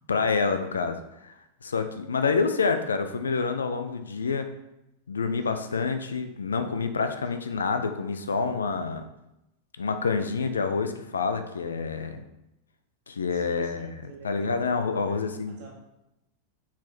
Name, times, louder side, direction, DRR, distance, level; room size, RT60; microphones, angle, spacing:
voice 1, 0.1-1.3 1.6-4.5 5.1-9.0 9.8-12.2 13.1-13.9 14.2-15.6, left 4 dB, 70° left, 8 dB, 0.6 m, -27 dB
voice 2, 13.3-14.5 15.0-15.2 15.5-15.7, right 4 dB, 50° right, 0 dB, 1.7 m, -49 dB
6.1 x 4.2 x 4.1 m, 0.89 s
figure-of-eight pair, 90°, 0 cm